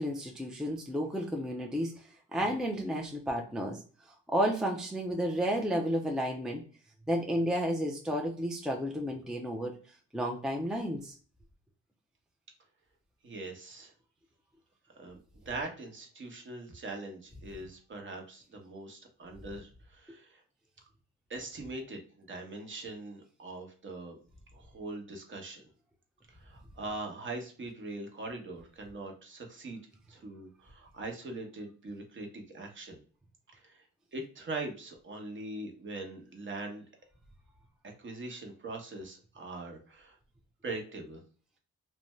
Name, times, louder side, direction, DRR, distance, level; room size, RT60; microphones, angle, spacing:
voice 1, 0.0-3.8 4.3-6.6 7.1-9.7 10.1-11.2, equal, ahead, 1 dB, 0.4 m, -32 dB
voice 2, 13.2-13.9 15.0-20.4 21.3-24.2 24.5-25.7 26.3-29.8 30.1-33.0 33.5-33.8 34.1-36.8 38.0-40.2 40.6-41.2, right 2 dB, 40° right, 2 dB, 0.9 m, -42 dB
2.6 x 2.2 x 3.0 m, 0.40 s
cardioid pair, 90°, 30 cm